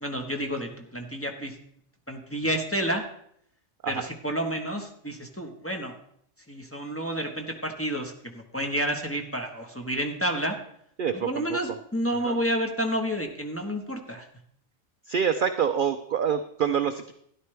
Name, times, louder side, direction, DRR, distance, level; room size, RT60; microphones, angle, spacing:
voice 1, 0.0-1.6 2.1-3.0 3.9-5.9 6.5-10.6 11.1-14.3, equal, 10° left, 2 dB, 1.2 m, -30 dB
voice 2, 11.0-11.6 12.2-12.4 15.1-17.1, right 7 dB, 55° right, 9 dB, 0.6 m, -26 dB
12.5 x 11.0 x 3.4 m, 0.69 s
omnidirectional pair, 1.4 m